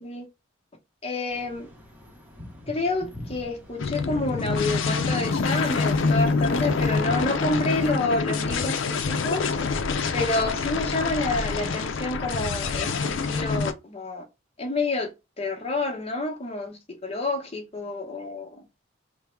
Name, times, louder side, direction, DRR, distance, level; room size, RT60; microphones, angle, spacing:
voice 1, 1.0-1.7 2.7-9.4 10.1-14.2 14.6-15.1 15.4-18.6, left 2 dB, 30° left, 0.9 m, -29 dB
sound 1, 1.3-7.9, left 1 dB, 10° right, 0.9 m, -43 dB
sound 2, 3.8-13.7, left 4 dB, 75° left, 0.5 m, -26 dB
3.5 x 2.2 x 4.3 m
head